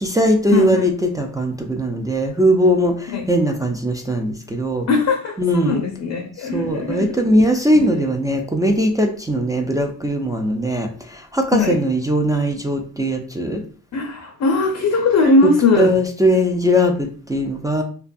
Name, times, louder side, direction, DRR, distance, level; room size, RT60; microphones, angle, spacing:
voice 1, 0.0-4.9 5.4-5.8 6.4-13.6 15.4-15.5 15.8-17.8, equal, 10° right, 0.3 m, -19 dB
voice 2, 0.5-0.8 3.1-3.2 4.9-7.3 7.8-8.0 11.5-11.8 13.9-15.9, left 3 dB, 50° left, 0.5 m, -19 dB
2.5 x 2.2 x 2.5 m
cardioid pair, 65°, 39 cm